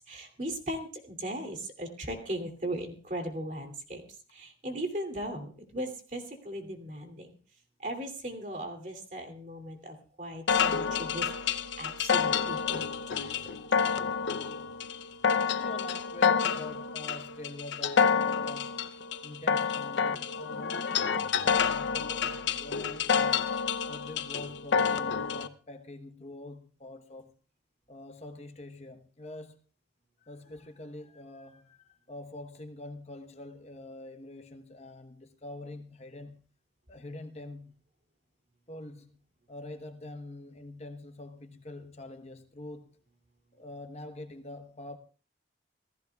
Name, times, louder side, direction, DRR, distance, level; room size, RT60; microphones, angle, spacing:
voice 1, 0.1-4.0 4.3-7.3 7.8-12.9 13.2-13.6, right 1 dB, 40° right, 2.7 m, -38 dB
sound 1, 10.5-25.5, left 6 dB, 75° left, 0.7 m, -28 dB
voice 2, 15.6-18.9 19.2-23.6 23.9-27.3 27.9-29.6 30.2-36.5 36.9-37.8 38.7-39.2 39.5-43.0 43.6-45.0, left 1 dB, 35° left, 1.0 m, -45 dB
27.0 x 16.0 x 2.3 m
head